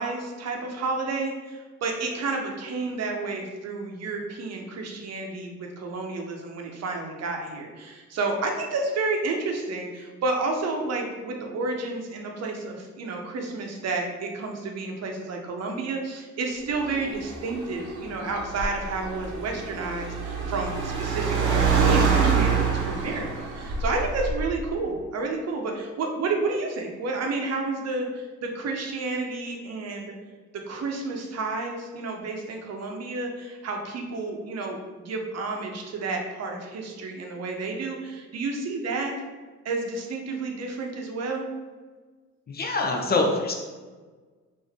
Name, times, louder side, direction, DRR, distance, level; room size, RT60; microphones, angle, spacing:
voice 1, 0.0-30.1 30.5-39.1 39.6-41.4, right 3 dB, 55° right, 2 dB, 0.7 m, -31 dB
Car, 16.7-24.7, right 5 dB, 90° right, 0.8 m, -26 dB
voice 2, 42.5-43.5, left 3 dB, 30° left, 2 dB, 0.7 m, -24 dB
3.6 x 2.6 x 3.4 m, 1.4 s
cardioid pair, 90°, 30 cm